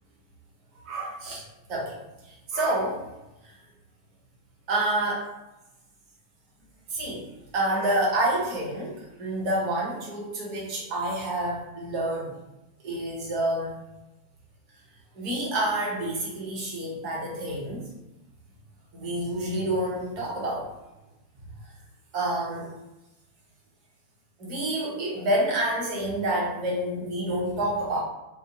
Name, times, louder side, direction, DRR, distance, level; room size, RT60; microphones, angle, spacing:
voice 1, 0.8-1.4 1.7-2.0 2.3-3.0 4.7-5.3 6.9-7.3 7.5-12.3 12.8-13.8 15.2-17.8 18.9-20.7 22.1-22.7 24.4-28.0, right 1 dB, 40° right, -4 dB, 0.9 m, -28 dB
2.7 x 2.0 x 2.7 m, 0.98 s
figure-of-eight pair, 90°, 0 cm